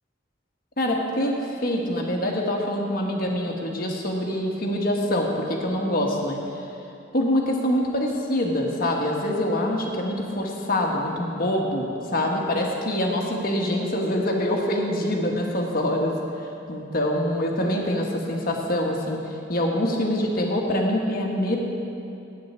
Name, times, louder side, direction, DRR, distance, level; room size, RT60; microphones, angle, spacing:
voice 1, 0.8-6.4 7.1-11.9 12.1-16.2 16.7-19.2 19.5-21.6, left 1 dB, 50° left, 0 dB, 1.4 m, -25 dB
7.9 x 7.6 x 8.6 m, 2.8 s
head